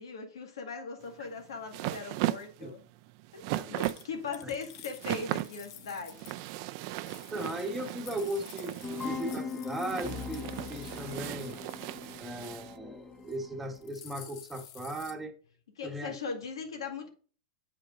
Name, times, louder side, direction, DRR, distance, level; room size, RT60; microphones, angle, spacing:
voice 1, 0.0-2.8 3.3-6.2 15.8-17.1, left 5 dB, 85° left, 2.0 m, -39 dB
sound 1, 1.0-12.7, right 17 dB, 50° right, 0.4 m, -37 dB
sound 2, 3.8-6.5 6.8-12.7 13.1-13.4 13.6-15.1, left 11 dB, 55° left, 0.8 m, -51 dB
voice 2, 7.3-11.6 12.2-15.3 15.8-16.2, right 1 dB, 10° right, 1.2 m, -37 dB
sound 3, 8.8-13.8, left 4 dB, 20° left, 1.1 m, -40 dB
7.5 x 4.9 x 3.7 m
hypercardioid pair, 125°, 3 cm